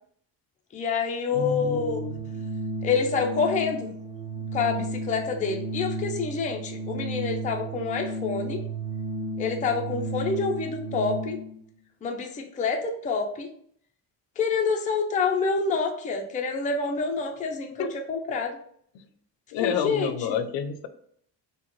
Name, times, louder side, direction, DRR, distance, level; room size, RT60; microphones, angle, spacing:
voice 1, 0.7-2.0 2.8-3.9 4.5-8.6 9.4-11.4 12.0-13.5 14.4-18.6 19.6-20.4, left 5 dB, 20° left, 2 dB, 0.3 m, -27 dB
voice 2, 1.3-2.2 17.8-18.0 18.9-19.1 19.5-20.9, left 7 dB, 90° left, 10 dB, 0.6 m, -29 dB
Organ, 1.3-11.6, right 2 dB, 75° right, 0.8 m, -33 dB
4.6 x 2.2 x 3.0 m, 0.64 s
cardioid pair, 150°, 44 cm